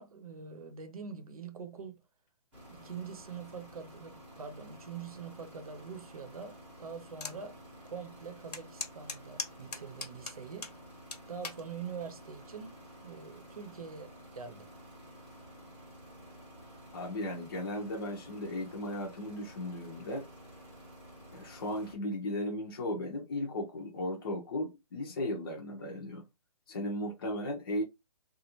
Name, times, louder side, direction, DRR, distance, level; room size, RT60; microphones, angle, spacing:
voice 1, 0.0-2.0 2.7-7.6 7.8-10.7 11.3-14.7, right 6 dB, 65° right, 0.8 m, -44 dB
sound 1, 2.5-21.9, equal, 5° right, 0.9 m, -52 dB
sound 2, 7.2-7.4 7.9-8.0 8.5-10.8 11.1-11.6 12.3-12.6, left 4 dB, 85° left, 1.2 m, -39 dB
voice 2, 16.9-20.3 21.3-26.2 26.7-27.8, left 1 dB, 35° left, 0.7 m, -36 dB
3.0 x 2.4 x 2.9 m
hypercardioid pair, 170°, 20 cm